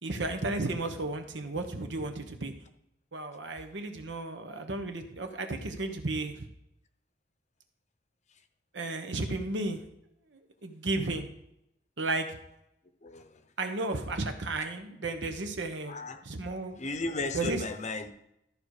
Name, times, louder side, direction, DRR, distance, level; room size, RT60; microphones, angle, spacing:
voice 1, 0.0-2.5 3.1-6.4 8.7-9.8 10.6-11.3 12.0-12.4 13.6-16.0 16.2-16.8 17.3-17.6, right 2 dB, 75° right, 6 dB, 1.2 m, -33 dB
voice 2, 13.0-13.3 15.9-16.2 16.8-18.1, left 3 dB, 40° left, 8 dB, 0.8 m, -35 dB
13.5 x 5.2 x 4.9 m, 0.81 s
head